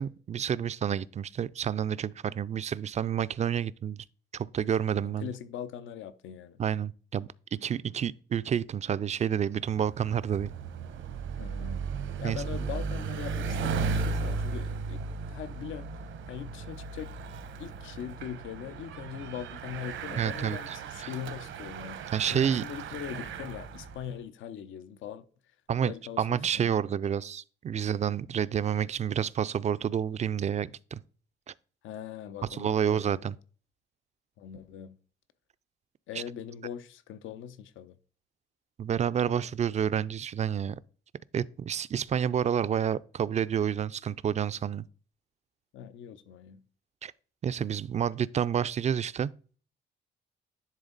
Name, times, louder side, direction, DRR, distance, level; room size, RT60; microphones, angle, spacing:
voice 1, 0.0-4.0 4.3-5.3 6.6-10.5 12.2-12.4 20.2-20.6 21.0-21.1 22.1-22.6 25.7-31.0 32.5-33.3 38.8-40.8 41.3-44.8 47.0-47.1 47.4-49.3, right 8 dB, 35° right, 0.4 m, -29 dB
voice 2, 5.0-6.6 11.4-11.9 12.2-15.0 15.3-16.0 16.3-17.1 17.6-22.0 22.3-25.2 25.8-26.9 31.8-33.2 34.4-35.0 36.1-38.0 45.7-46.6, left 9 dB, 80° left, 0.6 m, -41 dB
Bicycle, 9.5-24.1, right 4 dB, 75° right, 1.0 m, -36 dB
10.5 x 3.6 x 3.9 m
cardioid pair, 90°, 20 cm